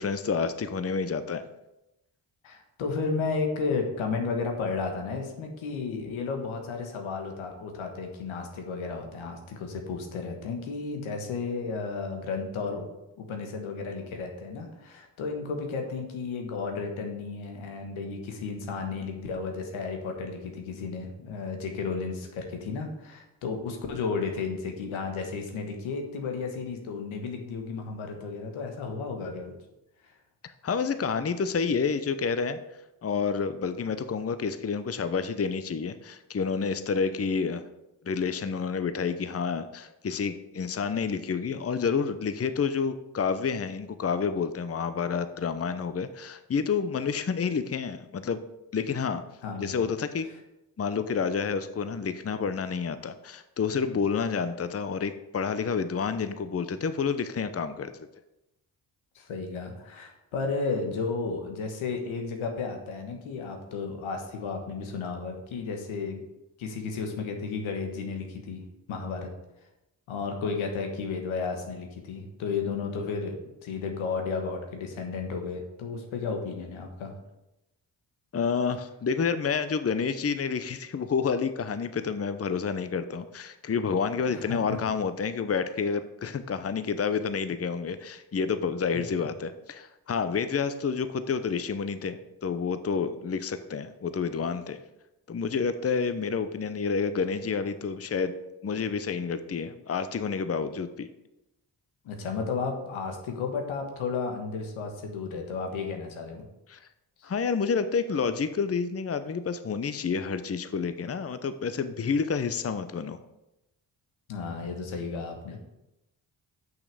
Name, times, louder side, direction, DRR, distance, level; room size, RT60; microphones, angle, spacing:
voice 1, 0.0-1.4 30.6-32.6 33.0-37.6 38.0-48.4 48.7-49.2 49.6-50.3 50.8-58.1 78.3-94.8 95.3-98.3 98.6-101.1 106.7-106.8 107.2-113.2, left 5 dB, 30° left, 11 dB, 0.8 m, -29 dB
voice 2, 2.4-12.9 13.2-29.5 49.4-49.8 59.1-66.2 66.6-68.6 68.9-69.3 70.1-73.4 73.6-77.1 84.2-84.8 102.0-106.5 107.2-107.3 114.3-115.6, left 4 dB, 90° left, 3 dB, 1.5 m, -33 dB
6.4 x 5.8 x 6.9 m, 0.91 s
supercardioid pair, 45°, 47 cm